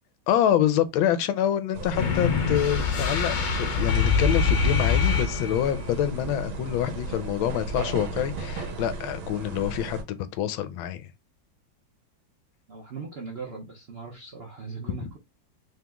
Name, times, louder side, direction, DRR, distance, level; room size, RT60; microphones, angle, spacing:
voice 1, 0.3-11.1, left 10 dB, 90° left, 1.4 m, -26 dB
sound 1, 1.7-10.0, right 2 dB, 90° right, 1.7 m, -35 dB
sound 2, 2.0-5.8, left 5 dB, 55° left, 1.3 m, -24 dB
voice 2, 12.7-15.2, right 4 dB, 55° right, 0.7 m, -39 dB
3.8 x 2.9 x 3.5 m
omnidirectional pair, 2.2 m